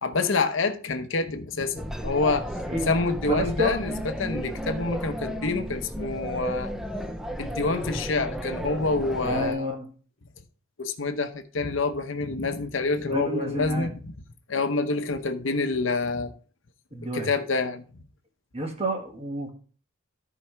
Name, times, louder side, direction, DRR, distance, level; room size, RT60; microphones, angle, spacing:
voice 1, 0.0-2.5 2.9-3.9 4.2-6.7 7.4-9.7 10.8-14.1 14.5-16.3 17.1-17.8, left 3 dB, 65° left, 0.9 m, -27 dB
sound 1, 1.8-9.5, equal, ahead, 0.6 m, -33 dB
voice 2, 3.3-3.8 9.2-9.9 13.1-13.9 16.9-17.3 18.5-19.5, equal, 30° right, 1.8 m, -29 dB
13.5 x 4.8 x 3.4 m
head